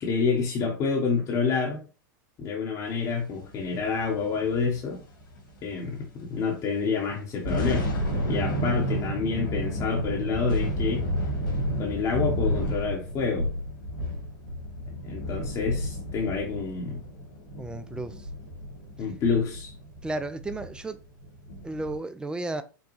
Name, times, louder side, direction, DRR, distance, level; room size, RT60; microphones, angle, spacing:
voice 1, 0.0-1.8 2.4-5.0 5.6-7.9 8.3-11.0 11.8-13.5 15.0-17.0 19.0-19.7, left 5 dB, 30° left, 1.0 m, -28 dB
sound 1, 3.4-6.2 6.5-6.7 7.2-22.0, equal, 75° left, 2.0 m, -31 dB
voice 2, 17.6-18.3 20.0-21.1 21.6-22.6, right 2 dB, 10° right, 0.4 m, -33 dB
5.2 x 2.2 x 3.1 m
hypercardioid pair, 110°, 11 cm